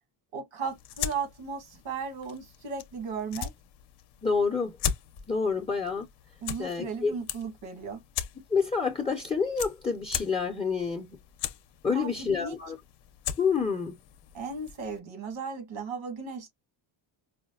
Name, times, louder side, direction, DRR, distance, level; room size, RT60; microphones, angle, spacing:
voice 1, 0.3-3.5 6.4-8.0 11.9-12.1 12.4-12.6 14.3-16.5, right 5 dB, 85° right, 1.9 m, -36 dB
sound 1, 0.6-15.0, left 9 dB, 55° left, 0.6 m, -39 dB
voice 2, 4.2-4.7 5.3-6.1 6.6-7.1 8.5-11.2 11.8-12.8 13.4-14.0, left 5 dB, 10° left, 0.5 m, -28 dB
4.9 x 2.1 x 2.3 m
cardioid pair, 145°, 49 cm